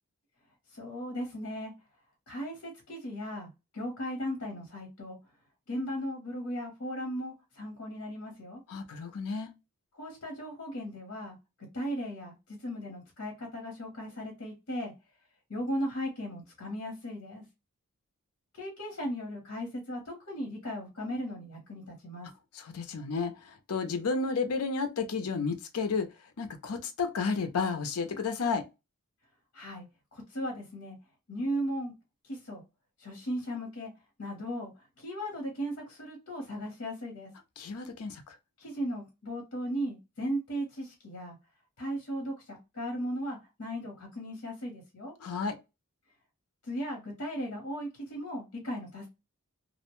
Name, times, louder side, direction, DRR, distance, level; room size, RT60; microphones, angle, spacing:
voice 1, 0.7-1.7 2.3-5.2 5.7-8.6 9.9-14.9 15.5-17.4 18.5-22.3 29.5-29.9 30.1-31.0 31.3-31.9 32.2-32.6 33.0-33.9 34.2-37.3 38.6-41.4 41.8-45.1 46.7-49.1, equal, 60° left, 0.9 m, -37 dB
voice 2, 8.7-9.5 22.5-26.1 26.4-28.7 37.6-38.3 45.2-45.6, left 4 dB, 80° left, 0.6 m, -32 dB
2.5 x 2.1 x 3.0 m
head